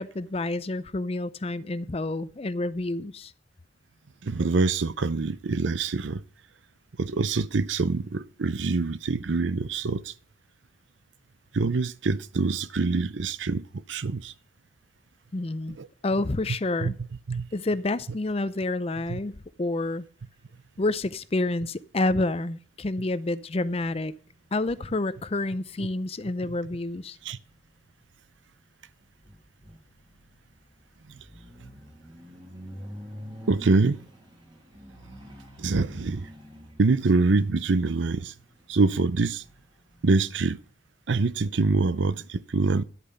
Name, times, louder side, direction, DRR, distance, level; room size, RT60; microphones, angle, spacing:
voice 1, 0.0-3.3 15.3-15.8 16.0-17.0 17.5-20.0 20.8-24.1 24.5-27.2, left 2 dB, 30° left, 0.5 m, -29 dB
voice 2, 4.2-6.2 7.0-10.1 11.5-14.3 15.8-15.9 16.8-16.9 17.3-17.5 19.1-19.2 25.8-25.9 27.2-27.4 31.1-31.2 33.5-34.0 35.6-36.3 36.8-38.3 38.7-39.4 40.0-40.6 41.1-42.8, right 3 dB, 75° right, 0.6 m, -25 dB
sound 1, 23.6-40.7, equal, 20° right, 2.5 m, -49 dB
11.0 x 8.3 x 5.6 m
head